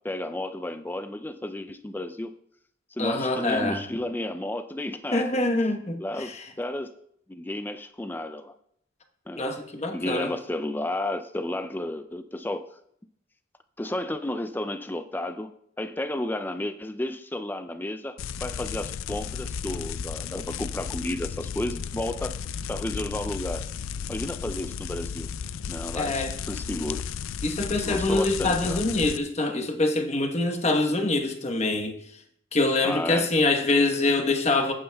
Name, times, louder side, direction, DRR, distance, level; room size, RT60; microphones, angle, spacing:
voice 1, 0.0-2.3 2.9-5.3 6.0-6.3 6.6-6.9 7.3-8.5 9.3-9.4 9.9-12.7 13.8-22.3 22.7-23.7 24.1-25.3 25.7-27.0 27.7-28.8 32.8-33.3, left 1 dB, 10° left, 9 dB, 0.3 m, -32 dB
voice 2, 3.0-3.8 5.1-6.4 9.4-10.3 25.9-26.3 27.4-32.0 32.5-34.7, left 2 dB, 35° left, 4 dB, 1.1 m, -25 dB
sound 1, 18.2-29.2, left 7 dB, 85° left, 0.4 m, -34 dB
14.5 x 8.7 x 2.3 m, 0.71 s
head